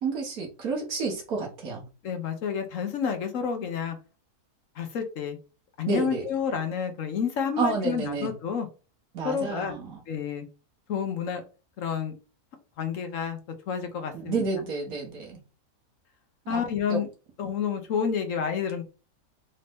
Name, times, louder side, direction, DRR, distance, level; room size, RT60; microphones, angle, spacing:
voice 1, 0.0-1.8 5.9-6.2 7.6-8.3 9.1-10.0 14.1-15.4 16.5-16.6 16.9-17.0, right 4 dB, 70° right, 1.6 m, -30 dB
voice 2, 2.0-4.0 4.8-5.4 5.8-8.7 9.2-9.8 10.1-10.4 10.9-11.4 11.8-12.1 12.8-13.4 13.7-14.4 16.5-17.1 17.4-18.8, left 7 dB, 65° left, 1.1 m, -29 dB
4.3 x 2.6 x 3.4 m
omnidirectional pair, 1.6 m